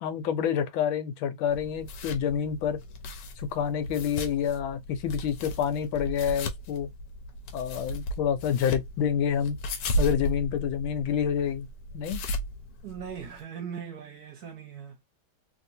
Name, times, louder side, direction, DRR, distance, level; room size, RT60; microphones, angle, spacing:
voice 1, 0.0-2.8 3.4-6.9 7.5-9.6 10.0-11.7 11.9-12.2, left 8 dB, 85° left, 1.5 m, -28 dB
sound 1, 1.5-13.4, equal, 65° left, 1.2 m, -35 dB
voice 2, 12.8-15.0, right 7 dB, 65° right, 1.0 m, -39 dB
3.2 x 2.7 x 2.7 m
omnidirectional pair, 2.2 m